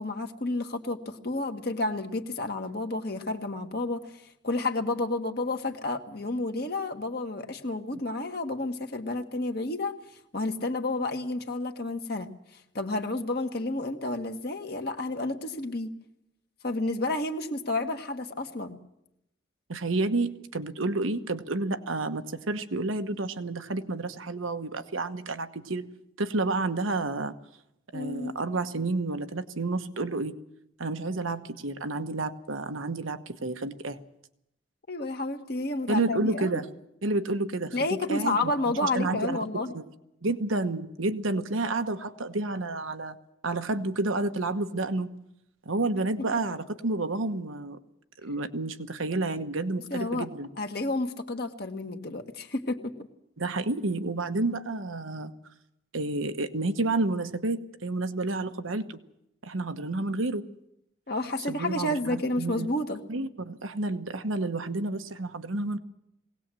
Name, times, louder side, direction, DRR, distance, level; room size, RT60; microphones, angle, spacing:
voice 1, 0.0-10.0 10.3-12.3 12.7-15.9 16.6-18.8 27.9-28.4 34.9-36.6 37.7-39.7 46.3-46.4 49.9-50.3 50.6-52.9 61.1-63.0, left 2 dB, 50° left, 4 dB, 1.5 m, -30 dB
voice 2, 19.7-25.9 26.2-27.3 27.9-30.3 30.8-34.0 35.9-36.7 37.0-39.4 39.7-39.8 40.2-43.2 43.4-45.1 45.6-47.8 48.2-50.5 53.4-55.3 55.9-59.0 59.4-60.5 61.5-62.7 63.1-65.8, right 2 dB, 90° right, 9 dB, 1.2 m, -30 dB
21.0 x 18.0 x 7.6 m, 0.82 s
head